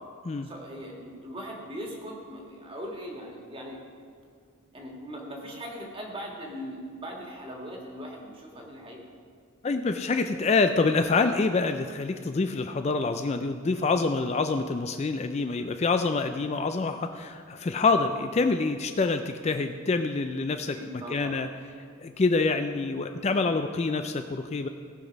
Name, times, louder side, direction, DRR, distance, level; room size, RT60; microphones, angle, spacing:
voice 1, 0.4-3.8 4.7-9.0 20.7-21.4, equal, 25° right, 0 dB, 1.8 m, -40 dB
voice 2, 9.6-21.5 22.0-24.7, left 3 dB, 30° left, 7 dB, 0.4 m, -26 dB
17.5 x 6.0 x 5.2 m, 2.3 s
head